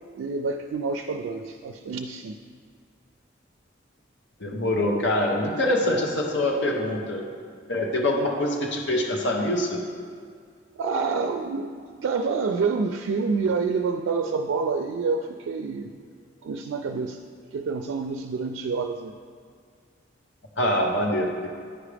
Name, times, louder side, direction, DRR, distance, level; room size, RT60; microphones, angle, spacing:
voice 1, 0.2-2.4 10.8-15.9 16.4-17.2 17.5-19.1, right 4 dB, 85° right, 5 dB, 0.3 m, -28 dB
voice 2, 4.4-7.2 7.7-9.8 20.6-21.5, left 1 dB, 65° left, 0 dB, 0.8 m, -24 dB
10.0 x 4.8 x 3.3 m, 2.1 s
head